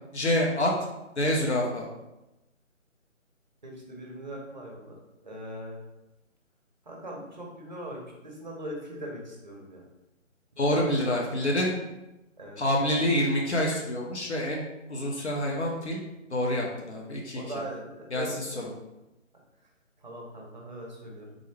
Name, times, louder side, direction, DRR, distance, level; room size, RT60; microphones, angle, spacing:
voice 1, 0.1-0.7 1.2-1.9 10.6-11.8 12.6-16.0 16.3-17.4 18.1-18.7, left 1 dB, 55° left, -1 dB, 0.7 m, -27 dB
voice 2, 3.6-5.0 5.2-5.8 6.9-9.8 10.7-11.2 12.4-12.6 17.3-18.3 20.0-21.4, right 1 dB, 35° right, -1 dB, 0.6 m, -40 dB
3.7 x 2.0 x 3.2 m, 0.97 s
figure-of-eight pair, 150°, 40 cm